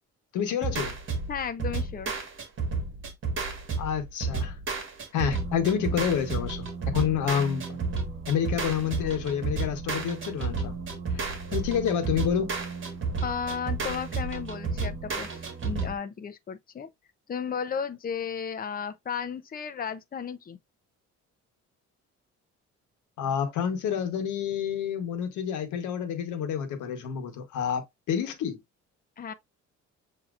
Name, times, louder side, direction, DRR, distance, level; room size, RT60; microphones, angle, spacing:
voice 1, 0.3-0.9 3.8-4.6 5.1-7.8 8.3-10.8 11.1-12.5 23.2-28.6, left 8 dB, 85° left, 1.2 m, -29 dB
sound 1, 0.6-16.0, right 4 dB, 40° right, 1.5 m, -32 dB
voice 2, 1.3-2.1 13.2-16.9 17.3-20.6 29.2-29.3, left 6 dB, 30° left, 0.6 m, -34 dB
7.0 x 2.9 x 2.4 m
cardioid pair, 110°, 29 cm